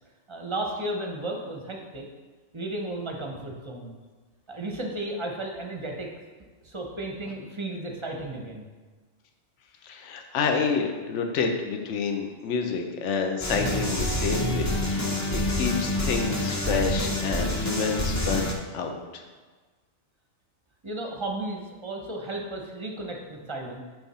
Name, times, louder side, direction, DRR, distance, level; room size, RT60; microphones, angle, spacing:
voice 1, 0.3-2.1 2.5-3.9 4.5-6.1 6.6-8.7 20.8-23.8, right 2 dB, 30° right, 1 dB, 0.7 m, -34 dB
voice 2, 9.8-18.5 18.7-19.2, left 5 dB, 65° left, 4 dB, 1.0 m, -29 dB
sound 1, 13.4-18.5, left 1 dB, 20° left, 0.4 m, -27 dB
9.2 x 3.6 x 4.2 m, 1.3 s
omnidirectional pair, 1.4 m